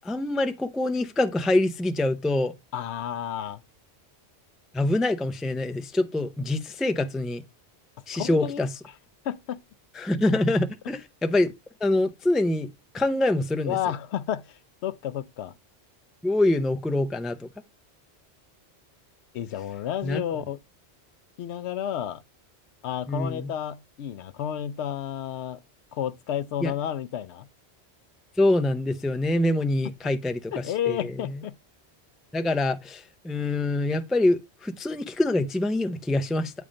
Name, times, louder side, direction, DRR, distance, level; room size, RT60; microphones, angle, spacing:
voice 1, 0.0-2.5 4.7-7.4 8.1-8.7 10.0-11.5 11.8-12.7 12.9-13.8 16.2-17.5 20.0-20.2 23.1-23.5 26.6-26.7 28.4-31.1 32.3-36.5, left 2 dB, ahead, 0.3 m, -25 dB
voice 2, 2.7-3.6 8.1-8.6 9.2-9.6 13.6-15.5 19.3-20.6 21.4-22.2 22.8-25.6 25.9-27.5 30.0-30.1 30.5-31.6, left 10 dB, 80° left, 0.8 m, -31 dB
8.6 x 3.6 x 5.1 m
omnidirectional pair, 1.1 m